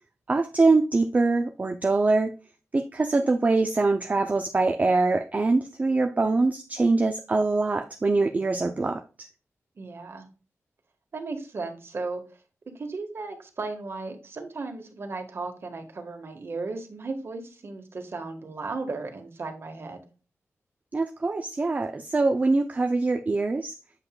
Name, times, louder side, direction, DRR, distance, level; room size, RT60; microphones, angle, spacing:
voice 1, 0.3-2.3 2.7-9.3 20.9-23.7, right 3 dB, 30° right, 5 dB, 0.5 m, -23 dB
voice 2, 9.8-10.2 11.1-12.2 12.7-20.0, right 3 dB, 50° right, 4 dB, 1.6 m, -35 dB
8.2 x 5.5 x 2.3 m, 0.34 s
wide cardioid pair, 110°, 5 cm